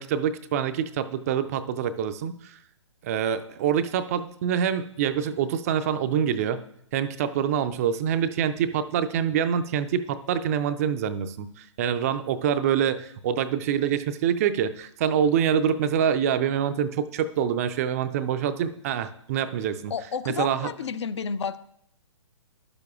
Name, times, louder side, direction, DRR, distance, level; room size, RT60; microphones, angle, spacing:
voice 1, 0.0-2.6 3.0-6.6 6.9-19.9 20.3-20.7, right 8 dB, 30° right, 11 dB, 0.4 m, -26 dB
voice 2, 19.9-21.6, left 6 dB, 60° left, 14 dB, 0.5 m, -31 dB
11.5 x 6.8 x 2.4 m, 0.73 s
figure-of-eight pair, 130°, 16 cm